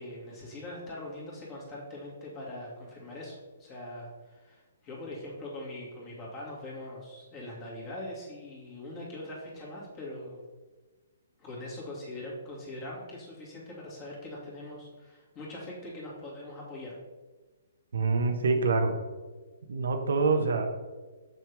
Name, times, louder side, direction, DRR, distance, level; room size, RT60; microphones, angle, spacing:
voice 1, 0.0-10.4 11.4-17.0, left 1 dB, 20° left, -4 dB, 2.2 m, -42 dB
voice 2, 17.9-19.0 19.7-20.7, right 4 dB, 75° right, 5 dB, 0.9 m, -26 dB
6.7 x 6.2 x 3.4 m, 1.3 s
hypercardioid pair, 155°, 0 cm